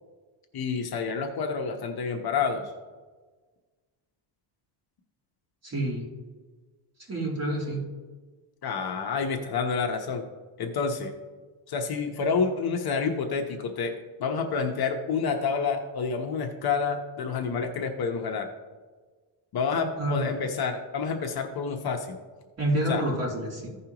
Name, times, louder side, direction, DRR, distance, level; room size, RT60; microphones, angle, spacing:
voice 1, 0.5-2.7 8.6-10.2 10.6-11.1 11.7-18.5 19.5-22.2 22.9-23.0, left 5 dB, 50° left, 4 dB, 1.0 m, -28 dB
voice 2, 5.6-6.1 7.1-7.8 9.1-9.2 20.0-20.3 22.6-23.7, right 1 dB, 30° right, -3 dB, 2.9 m, -28 dB
15.5 x 5.5 x 3.0 m, 1.4 s
cardioid pair, 125°, 49 cm